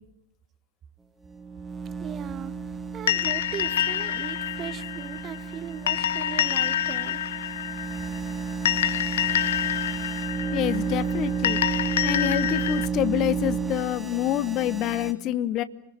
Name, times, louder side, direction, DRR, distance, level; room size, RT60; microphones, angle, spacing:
sound 1, 1.3-15.1, right 5 dB, 15° right, 2.2 m, -32 dB
voice 1, 2.0-7.2 14.1-14.2, right 9 dB, 30° right, 1.0 m, -38 dB
sound 2, 3.1-12.9, left 11 dB, 60° left, 1.2 m, -27 dB
voice 2, 10.5-11.6 12.0-15.6, left 13 dB, 35° left, 1.2 m, -27 dB
30.0 x 21.0 x 8.1 m
figure-of-eight pair, 90°, 0 cm